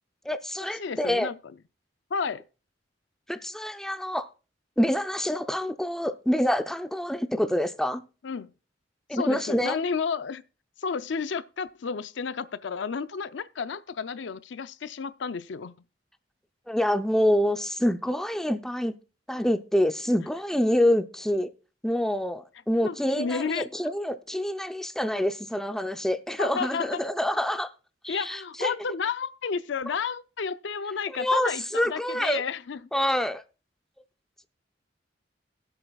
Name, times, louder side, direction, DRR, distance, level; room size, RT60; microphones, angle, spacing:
voice 1, 0.3-1.3 3.3-4.3 4.8-8.0 9.1-9.8 16.7-18.9 19.3-21.5 21.8-27.7 28.0-28.7 31.1-32.4 32.9-33.4, equal, 5° left, 0.5 m, -26 dB
voice 2, 0.8-1.6 2.1-2.4 8.2-8.5 9.1-10.4 10.8-15.7 22.8-23.7 26.4-26.9 28.1-32.9, left 5 dB, 75° left, 0.5 m, -31 dB
21.5 x 7.9 x 2.3 m
head